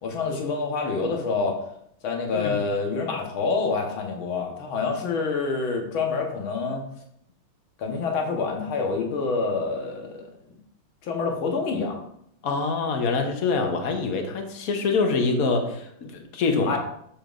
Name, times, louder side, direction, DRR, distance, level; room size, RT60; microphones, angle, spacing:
voice 1, 0.0-1.6 2.0-6.8 7.8-10.6 11.0-12.0 16.7-16.8, left 4 dB, 70° left, 1 dB, 2.0 m, -27 dB
voice 2, 12.4-16.8, left 4 dB, 55° left, 4 dB, 1.1 m, -25 dB
7.5 x 7.0 x 2.5 m, 0.72 s
omnidirectional pair, 2.3 m